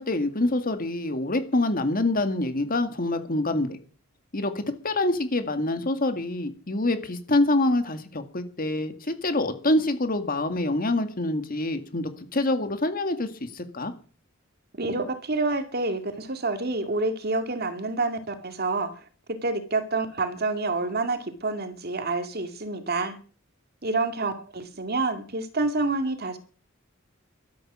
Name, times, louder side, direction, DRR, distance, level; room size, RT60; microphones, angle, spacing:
voice 1, 0.0-3.8 4.3-13.9, left 2 dB, 45° left, 1.9 m, -26 dB
voice 2, 14.8-19.0 19.3-23.2 23.8-26.4, right 3 dB, 50° right, 2.3 m, -28 dB
14.5 x 13.0 x 6.2 m
head